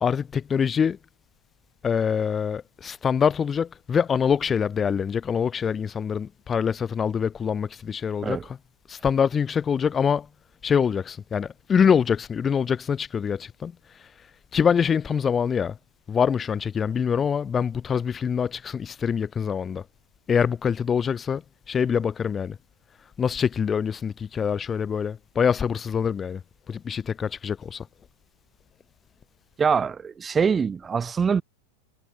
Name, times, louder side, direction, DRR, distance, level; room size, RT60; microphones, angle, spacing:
voice 1, 0.0-1.0 1.8-8.6 8.9-10.3 10.6-13.7 14.5-15.8 16.1-19.8 20.3-21.4 21.7-22.6 23.2-26.4 26.7-27.9, left 7 dB, 20° left, 0.7 m, -24 dB
voice 2, 29.6-31.4, right 6 dB, 20° right, 2.5 m, -24 dB
figure-of-eight pair, 90°, 0 cm